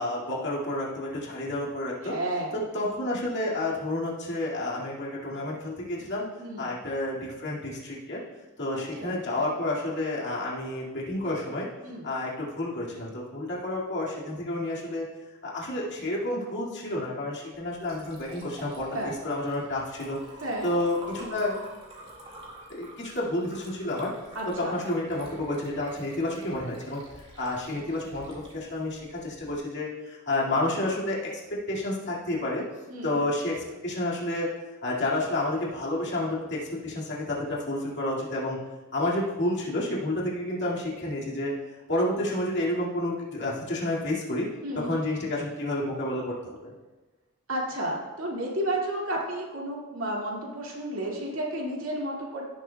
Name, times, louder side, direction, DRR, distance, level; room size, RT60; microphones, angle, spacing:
voice 1, 0.0-2.1 2.5-6.2 6.6-8.2 8.6-11.7 12.0-15.0 15.4-20.2 20.6-21.6 22.7-24.1 24.6-27.0 27.4-32.6 33.0-34.5 34.8-38.6 38.9-41.5 41.9-44.5 44.8-46.7, left 1 dB, 55° left, -5 dB, 2.2 m, -30 dB
voice 2, 2.0-2.5 6.4-6.7 9.0-9.2 11.8-12.1 18.9-19.1 20.4-20.7 24.3-24.8 32.9-33.2 44.6-44.9 47.5-52.4, right 1 dB, 65° right, -2 dB, 2.3 m, -32 dB
Liquid, 17.5-29.6, right 1 dB, 25° right, 1.9 m, -48 dB
16.5 x 7.1 x 2.3 m, 1.2 s
head